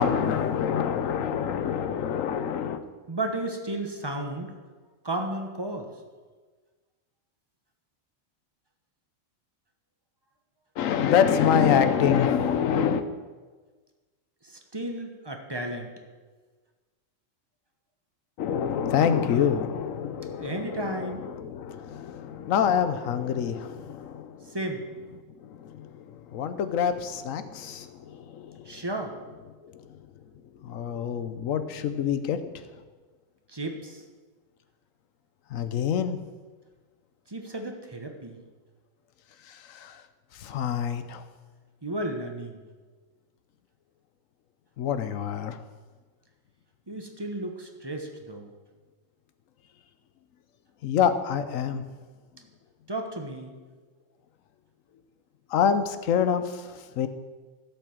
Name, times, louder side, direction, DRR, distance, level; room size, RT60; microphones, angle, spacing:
voice 1, 0.0-2.8 10.8-13.0 18.4-24.5 25.4-25.9 26.3-28.7 29.7-29.8 30.6-32.4 35.5-36.2 39.7-39.9 40.4-41.2 44.8-45.6 50.8-51.8 55.5-56.7 57.0-57.1, left 8 dB, 85° left, 11 dB, 1.1 m, -26 dB
voice 2, 3.1-4.5 5.0-5.9 14.4-15.9 20.4-21.2 24.5-24.8 28.6-29.2 33.5-34.0 37.3-38.4 41.8-42.6 46.9-48.5 52.9-53.6, right 1 dB, 20° right, 4 dB, 1.1 m, -33 dB
12.0 x 5.9 x 7.3 m, 1.4 s
omnidirectional pair, 1.3 m